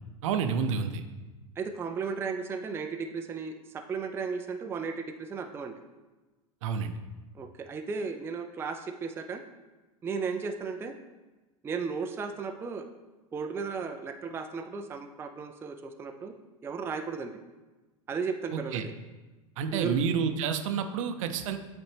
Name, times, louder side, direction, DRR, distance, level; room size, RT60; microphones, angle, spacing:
voice 1, 0.2-1.0 6.6-6.9 18.5-18.8 19.6-21.6, right 6 dB, 60° right, 8 dB, 0.6 m, -29 dB
voice 2, 1.6-5.7 7.3-9.4 10.0-11.0 11.6-12.9 13.3-16.3 16.6-17.3 18.1-18.9 19.7-20.0, right 5 dB, 15° right, 5 dB, 0.4 m, -35 dB
8.8 x 4.2 x 3.4 m, 1.2 s
hypercardioid pair, 95°, 18 cm